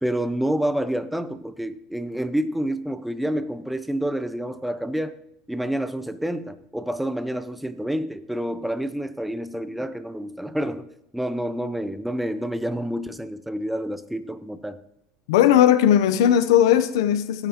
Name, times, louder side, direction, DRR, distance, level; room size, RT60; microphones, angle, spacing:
voice 1, 0.0-5.2 5.5-10.9 11.1-14.8, right 1 dB, 5° right, 12 dB, 0.7 m, -28 dB
voice 2, 15.3-17.5, left 10 dB, 85° left, 12 dB, 0.8 m, -18 dB
17.5 x 9.1 x 3.0 m, 0.81 s
supercardioid pair, 115°, 2 cm